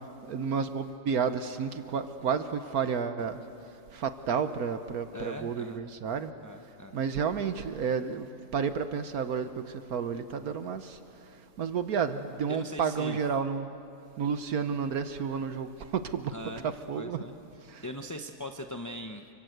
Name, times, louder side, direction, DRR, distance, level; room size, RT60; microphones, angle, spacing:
voice 1, 0.3-3.4 3.9-6.3 6.9-11.0 11.6-13.7 14.2-16.3 16.6-17.2 17.7-17.8, right 6 dB, 70° right, 10 dB, 1.4 m, -31 dB
voice 2, 5.1-5.8 6.4-6.9 12.5-13.2 16.3-16.7 17.0-17.3 17.8-19.2, left 1 dB, 20° left, 5 dB, 0.5 m, -40 dB
29.5 x 25.0 x 8.0 m, 2.7 s
omnidirectional pair, 1.7 m